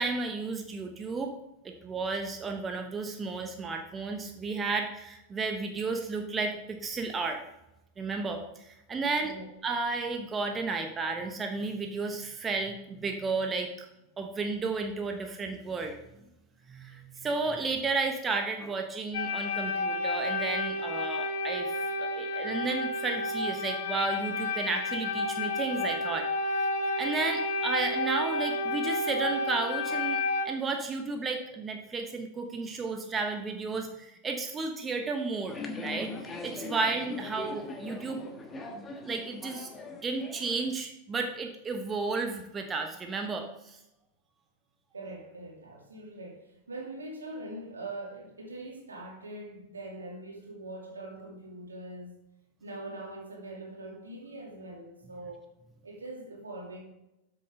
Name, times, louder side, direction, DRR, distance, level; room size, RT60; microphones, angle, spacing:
voice 1, 0.0-1.3 1.6-7.4 8.0-9.3 9.6-13.9 14.2-16.0 16.7-26.7 27.0-35.6 35.8-36.1 36.4-38.2 38.7-39.7 40.0-43.8, right 4 dB, 20° right, 4 dB, 1.1 m, -33 dB
sound 1, 19.1-30.5, left 2 dB, 55° left, 1.3 m, -31 dB
sound 2, 35.5-40.7, left 2 dB, 20° left, 1.5 m, -41 dB
voice 2, 44.9-52.2 52.6-55.5 55.8-56.8, right 2 dB, 75° right, -1 dB, 2.6 m, -42 dB
12.5 x 6.6 x 3.8 m, 0.88 s
figure-of-eight pair, 90°, 0 cm